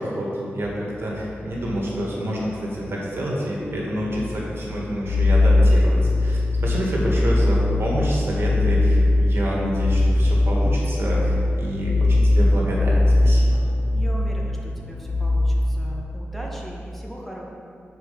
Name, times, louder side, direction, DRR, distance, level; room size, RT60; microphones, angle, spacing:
voice 1, 0.0-13.6, equal, 65° right, -4 dB, 1.7 m, -28 dB
sound 1, 0.7-2.7 3.2-3.3 3.9-16.0, left 2 dB, 55° left, 0.4 m, -20 dB
voice 2, 13.9-17.4, equal, 5° left, -2 dB, 1.0 m, -38 dB
7.4 x 4.6 x 5.1 m, 2.6 s
wide cardioid pair, 85°, 5 cm